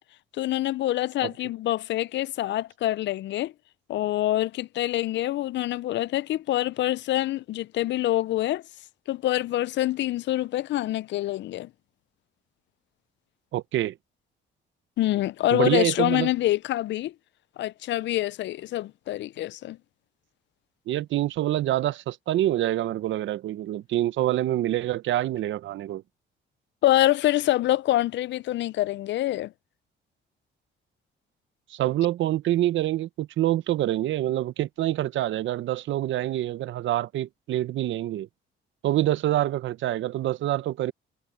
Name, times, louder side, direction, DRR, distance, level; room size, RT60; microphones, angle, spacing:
voice 1, 0.4-3.5 3.9-8.6 9.1-11.7 15.0-17.1 17.6-19.8 26.8-29.5, left 14 dB, 65° left, 0.4 m, -26 dB
voice 2, 13.5-14.0 15.5-16.3 20.9-26.0 31.7-38.3 38.8-40.9, right 13 dB, 75° right, 0.7 m, -26 dB
cardioid pair, 90°, 20 cm